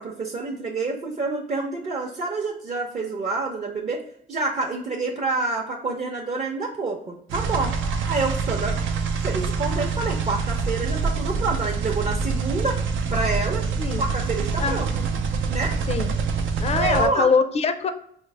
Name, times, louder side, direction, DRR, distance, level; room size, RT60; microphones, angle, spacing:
voice 1, 0.0-4.0 4.3-7.7 8.1-8.8 9.2-12.8 13.1-13.6 14.0-14.9 15.5-15.7 16.7-17.3, right 3 dB, 40° right, 0 dB, 0.7 m, -27 dB
sound 1, 7.3-17.1, right 5 dB, 80° right, 0.5 m, -26 dB
voice 2, 14.6-14.9 15.9-16.1 16.6-17.9, left 5 dB, 30° left, 9 dB, 0.4 m, -23 dB
4.6 x 2.0 x 3.2 m, 0.65 s
cardioid pair, 90°, 20 cm